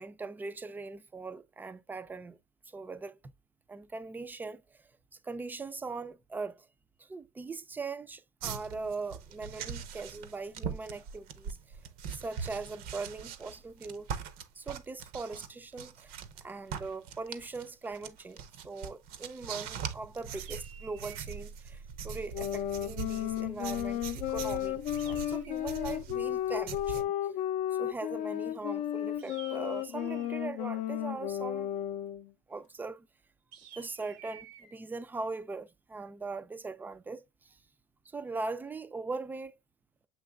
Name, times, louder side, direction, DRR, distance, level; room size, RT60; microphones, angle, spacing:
voice 1, 0.0-2.4 2.7-3.2 3.7-4.8 5.2-6.7 7.0-11.6 12.1-14.1 14.6-16.2 16.4-27.1 27.7-31.7 32.5-33.1 33.8-37.6 38.1-39.6, right 3 dB, 10° right, 0.4 m, -40 dB
sound 1, 8.4-16.4 16.7-27.0, right 7 dB, 60° right, 0.7 m, -42 dB
sound 2, 20.3-21.5 24.9-26.0 29.2-30.4 33.5-34.7, right 8 dB, 85° right, 1.1 m, -53 dB
sound 3, 22.3-32.3, left 12 dB, 50° left, 0.5 m, -33 dB
7.6 x 3.0 x 2.2 m
cardioid pair, 130°, 16 cm